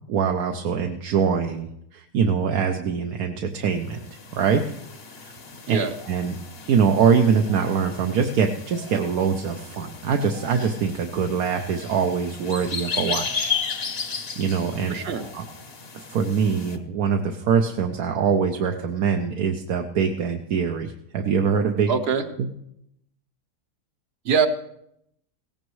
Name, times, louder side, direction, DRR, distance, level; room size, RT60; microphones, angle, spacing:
voice 1, 0.1-4.0 4.3-4.6 5.2-5.3 5.7-5.8 6.1-6.4 6.7-13.5 14.0-14.9 15.3-15.5 15.9-21.9 22.4-22.5, right 6 dB, 65° right, 3 dB, 1.2 m, -23 dB
sound 1, 3.8-16.8, left 6 dB, 40° left, 1.1 m, -35 dB
voice 2, 14.9-15.3 21.9-22.3 24.2-24.5, right 6 dB, 45° right, 8 dB, 1.0 m, -23 dB
17.0 x 16.0 x 3.1 m, 0.78 s
omnidirectional pair, 1.7 m